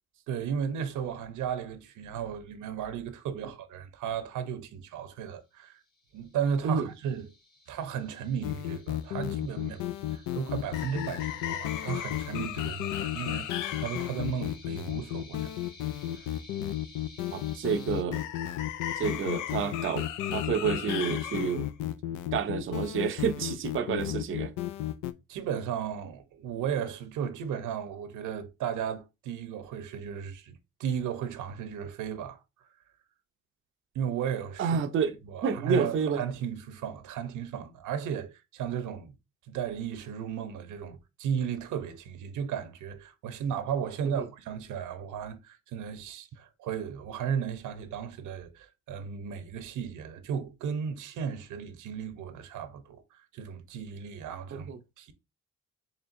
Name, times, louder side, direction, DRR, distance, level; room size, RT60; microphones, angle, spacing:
voice 1, 0.3-5.8 6.1-7.3 7.7-9.8 10.1-15.5 16.2-16.3 25.3-32.4 33.9-34.7 35.3-39.1 39.5-54.7 55.0-55.1, right 8 dB, 85° right, 0.8 m, -35 dB
sound 1, 5.9-18.0, left 3 dB, 30° left, 1.6 m, -54 dB
sound 2, 8.4-25.1, left 12 dB, 90° left, 0.5 m, -33 dB
voice 2, 17.3-18.2 19.0-21.7 22.3-24.5 34.6-35.1 35.4-36.2 44.2-44.3 54.5-54.8, right 6 dB, 45° right, 0.5 m, -29 dB
4.3 x 3.3 x 2.5 m
cardioid pair, 90°, 30 cm